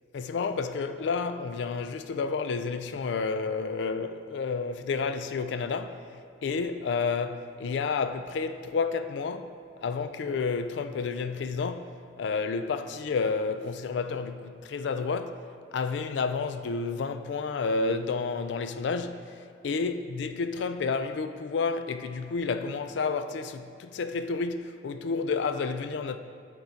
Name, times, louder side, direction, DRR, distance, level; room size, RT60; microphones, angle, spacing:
voice 1, 0.1-6.0 6.4-9.5 9.8-15.4 15.7-26.2, left 4 dB, 70° left, 0.3 m, -30 dB
8.1 x 3.8 x 4.4 m
head